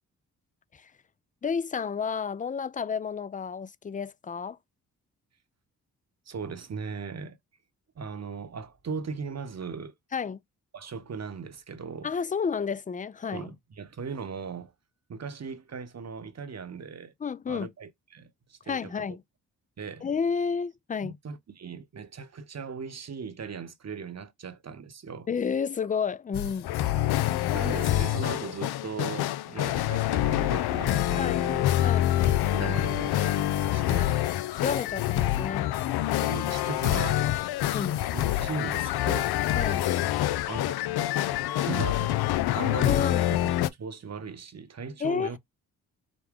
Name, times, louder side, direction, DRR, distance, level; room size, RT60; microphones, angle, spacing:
voice 1, 1.4-4.6 10.1-10.4 12.0-13.5 17.2-17.7 18.7-19.2 20.0-21.2 25.3-26.7 31.2-31.5 31.8-32.1 34.5-35.7 37.7-38.0 39.5-39.9 42.8-43.3 45.0-45.4, left 6 dB, 20° left, 0.4 m, -31 dB
voice 2, 6.3-7.4 8.0-9.9 10.7-12.1 13.3-14.7 15.1-17.1 17.5-19.2 19.8-20.1 21.0-25.3 27.5-31.7 32.2-34.1 36.2-37.3 38.1-39.4 40.5-40.9 41.5-42.2 42.5-43.0 43.2-45.4, right 5 dB, 45° right, 1.0 m, -38 dB
sound 1, 26.3-43.7, left 13 dB, 75° left, 0.5 m, -26 dB
5.2 x 2.2 x 3.6 m
supercardioid pair, 50°, 38 cm